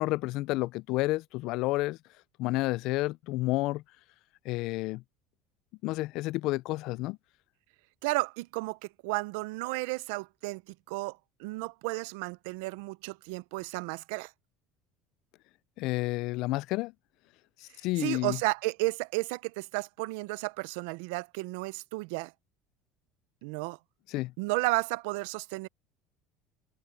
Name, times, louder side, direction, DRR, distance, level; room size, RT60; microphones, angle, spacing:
voice 1, 0.0-2.0 2.4-3.8 4.5-5.0 5.8-7.2 15.8-16.9 17.8-18.4 24.1-24.3, left 19 dB, 60° left, 0.3 m, -30 dB
voice 2, 8.0-14.3 18.0-22.3 23.4-23.8 24.4-25.7, right 24 dB, 85° right, 0.5 m, -33 dB
cardioid pair, 140°, 0 cm